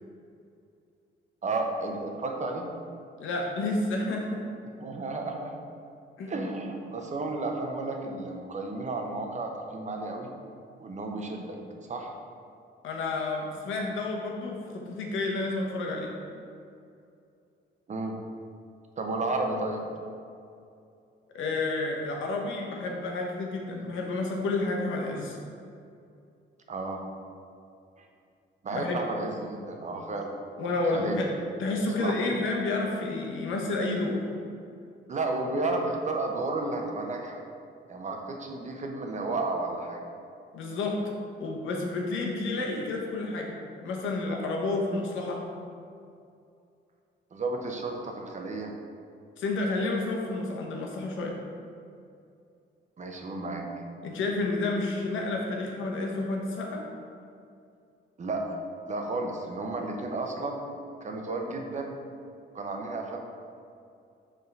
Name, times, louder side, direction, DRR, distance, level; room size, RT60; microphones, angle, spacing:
voice 1, 1.4-2.7 4.8-5.6 6.3-10.3 10.8-11.6 11.9-12.1 17.9-18.2 19.0-19.8 26.7-27.0 28.6-30.3 30.9-31.1 32.0-32.1 35.1-37.4 37.9-40.0 47.3-48.7 53.0-53.7 58.2-58.6 58.9-60.6 61.0-62.0 62.5-63.2, right 2 dB, 35° right, 2 dB, 0.9 m, -32 dB
voice 2, 3.2-4.4 6.2-6.3 12.8-16.1 21.3-25.4 28.7-29.0 30.6-31.3 31.6-34.3 40.5-41.0 41.4-45.4 49.4-51.4 54.0-56.8, left 2 dB, 80° left, 0 dB, 1.1 m, -30 dB
5.5 x 3.7 x 5.4 m, 2.5 s
cardioid pair, 90°, 20 cm